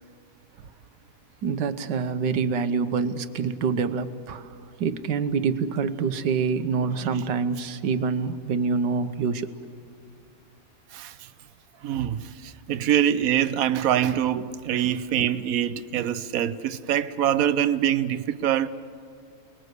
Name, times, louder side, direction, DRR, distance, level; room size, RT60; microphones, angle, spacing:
voice 1, 1.4-4.5 4.8-9.5 14.8-15.0, right 5 dB, 85° right, 1.6 m, -26 dB
voice 2, 11.8-18.7, right 10 dB, 60° right, 1.1 m, -24 dB
29.0 x 20.5 x 8.1 m
omnidirectional pair, 1.8 m